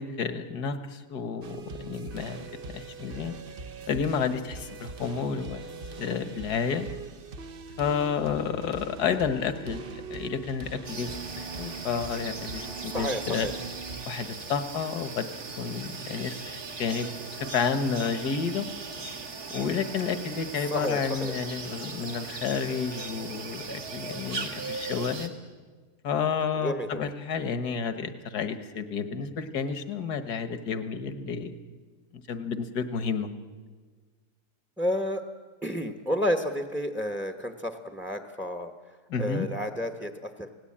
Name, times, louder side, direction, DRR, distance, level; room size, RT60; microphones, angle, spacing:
voice 1, 0.0-2.5 2.7-3.3 3.9-5.6 6.0-6.9 7.8-11.1 11.4-13.5 14.1-15.3 15.6-18.7 19.5-25.3 26.0-31.6 32.3-33.3 39.1-39.5, left 6 dB, 75° left, 10 dB, 1.8 m, -30 dB
sound 1, 1.4-14.1, right 4 dB, 45° right, 0.8 m, -42 dB
sound 2, 10.8-25.3, right 4 dB, 65° right, 2.6 m, -38 dB
voice 2, 12.9-13.5 20.5-21.3 26.5-27.1 34.8-35.3 35.6-40.5, equal, ahead, 6 dB, 0.9 m, -31 dB
27.5 x 17.5 x 8.7 m, 1.5 s
omnidirectional pair, 1.7 m